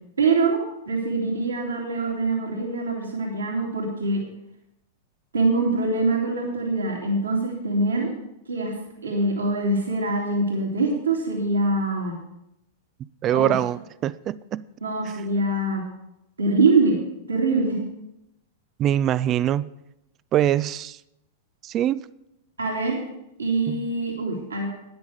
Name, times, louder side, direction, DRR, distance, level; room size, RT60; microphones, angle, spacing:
voice 1, 0.2-0.6 0.9-4.2 5.3-8.1 8.5-8.7 9.0-12.2 13.3-13.6 14.8-15.8 16.4-17.0 17.3-17.8 22.6-23.0 23.4-24.7, right 3 dB, 80° right, 2.5 m, -24 dB
voice 2, 13.2-14.6 18.8-19.7 20.3-21.0 21.6-22.0 23.7-23.8, right 11 dB, 35° right, 0.4 m, -23 dB
12.0 x 9.6 x 4.8 m
figure-of-eight pair, 100°, 0 cm